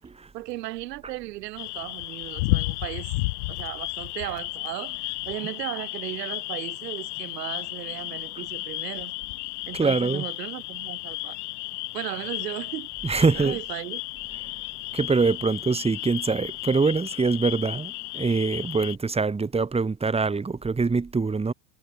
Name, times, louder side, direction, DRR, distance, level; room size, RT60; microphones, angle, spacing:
voice 1, 0.3-3.1 3.5-9.1 9.7-11.4 11.9-12.9 13.3-14.0, right 17 dB, 70° right, 4.8 m, -36 dB
sound 1, 1.6-19.0, left 24 dB, 65° left, 7.3 m, -33 dB
voice 2, 9.7-10.2 13.0-13.6 14.9-21.5, right 4 dB, 10° right, 2.6 m, -24 dB
hypercardioid pair, 110°, 49 cm